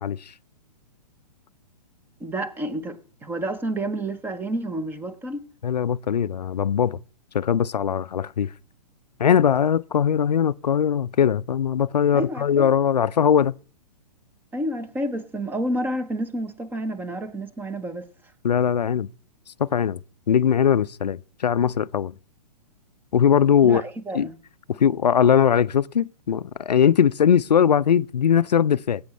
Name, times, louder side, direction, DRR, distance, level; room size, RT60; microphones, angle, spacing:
voice 1, 2.2-5.5 12.1-12.7 14.5-18.1 23.6-24.4, right 1 dB, 10° right, 0.9 m, -29 dB
voice 2, 5.6-7.0 7.3-8.5 9.2-13.6 18.4-19.1 19.6-20.0 20.3-22.1 23.1-23.8 24.1-24.3 24.7-29.0, left 8 dB, 80° left, 0.4 m, -20 dB
19.0 x 8.5 x 3.2 m
figure-of-eight pair, 120°, 21 cm